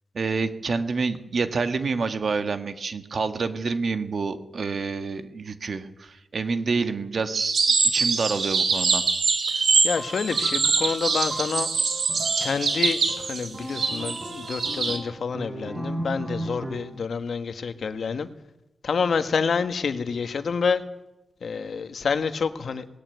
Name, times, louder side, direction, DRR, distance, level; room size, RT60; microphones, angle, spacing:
voice 1, 0.1-7.6 7.8-9.0, right 4 dB, 50° right, 10 dB, 1.6 m, -28 dB
sound 1, 7.3-15.0, right 4 dB, 70° right, 3.7 m, -24 dB
voice 2, 9.8-11.7 12.4-18.3 18.8-20.8 21.4-22.8, left 5 dB, 65° left, 10 dB, 1.5 m, -28 dB
sound 2, 10.0-17.0, right 1 dB, 20° right, 3.6 m, -37 dB
19.5 x 17.0 x 9.5 m, 0.91 s
wide cardioid pair, 145°, 0 cm